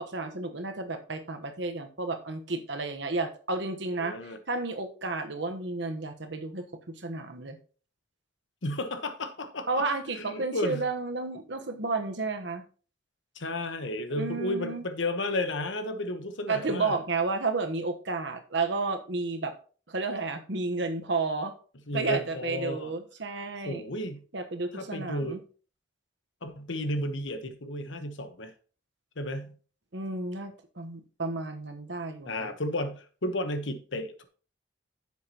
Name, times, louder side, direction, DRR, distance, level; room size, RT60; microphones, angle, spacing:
voice 1, 0.0-7.6 9.7-12.6 14.1-14.8 16.5-19.5 19.9-21.5 21.9-23.8 24.3-25.4 29.9-32.5, right 3 dB, 70° right, 1.1 m, -32 dB
voice 2, 4.0-4.4 8.6-9.8 10.1-10.9 13.3-17.0 21.9-22.9 23.6-24.2 24.7-25.4 26.4-28.5 29.2-29.6 32.3-34.2, left 1 dB, 80° left, 1.1 m, -33 dB
10.5 x 7.4 x 2.9 m
head